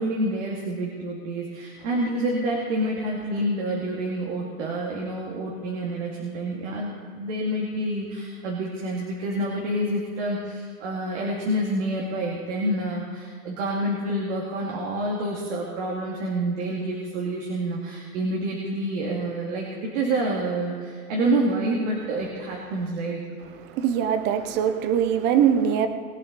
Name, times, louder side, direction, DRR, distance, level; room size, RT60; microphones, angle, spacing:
voice 1, 0.0-19.7 19.9-23.2, right 1 dB, 50° right, -3 dB, 2.5 m, -28 dB
voice 2, 23.7-25.9, right 8 dB, 25° right, 10 dB, 0.8 m, -22 dB
21.5 x 8.8 x 4.1 m, 2.1 s
hypercardioid pair, 145°, 44 cm